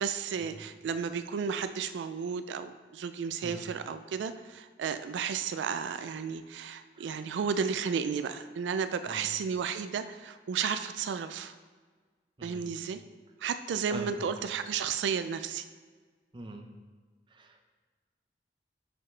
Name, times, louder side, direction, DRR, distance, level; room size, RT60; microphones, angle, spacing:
voice 1, 0.0-11.5 12.4-13.0 13.4-15.6, right 6 dB, 85° right, 11 dB, 0.3 m, -33 dB
voice 2, 12.4-12.7 13.9-14.1 16.3-16.7 17.3-17.6, right 2 dB, 25° right, 4 dB, 0.5 m, -43 dB
7.0 x 5.6 x 3.2 m, 1.5 s
head